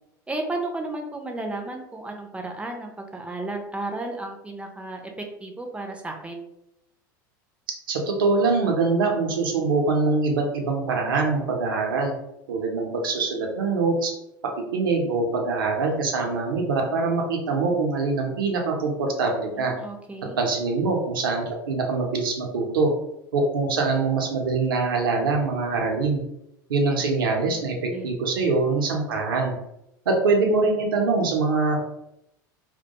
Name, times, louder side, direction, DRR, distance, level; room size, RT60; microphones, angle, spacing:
voice 1, 0.3-6.5 19.6-20.4 27.9-28.1, right 2 dB, 10° right, 2 dB, 0.4 m, -33 dB
voice 2, 7.9-12.1 12.5-14.1 14.7-19.7 20.4-22.9 23.3-26.2 26.7-29.6 30.1-31.8, right 3 dB, 80° right, 1 dB, 0.6 m, -23 dB
2.2 x 2.2 x 2.7 m, 0.82 s
hypercardioid pair, 85°, 11 cm